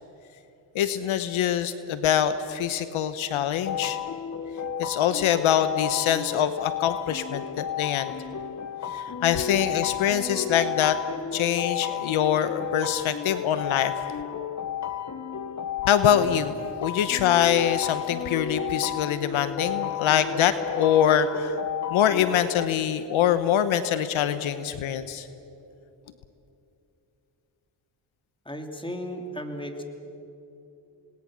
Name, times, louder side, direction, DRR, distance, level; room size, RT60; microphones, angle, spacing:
voice 1, 0.7-4.0 4.8-8.1 8.9-11.0 11.3-13.9 15.8-16.5 16.8-21.6 21.9-25.3, left 9 dB, 80° left, 12 dB, 1.0 m, -24 dB
sound 1, 3.6-22.7, left 8 dB, 35° left, 1.0 m, -32 dB
voice 2, 28.4-29.8, equal, 10° left, 4 dB, 3.2 m, -35 dB
27.5 x 20.5 x 6.4 m, 2.8 s
supercardioid pair, 60°, 48 cm